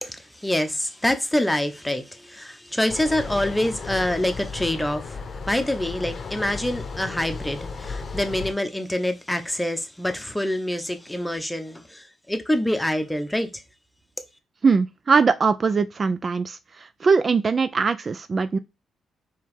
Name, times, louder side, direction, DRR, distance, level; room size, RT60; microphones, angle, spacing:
voice 1, 0.0-13.6, left 1 dB, 10° left, 0.8 m, -26 dB
sound 1, 2.9-8.5, left 4 dB, 50° left, 0.7 m, -35 dB
voice 2, 14.6-18.6, right 5 dB, 45° right, 0.3 m, -21 dB
4.5 x 3.0 x 3.5 m
supercardioid pair, 60°, 0 cm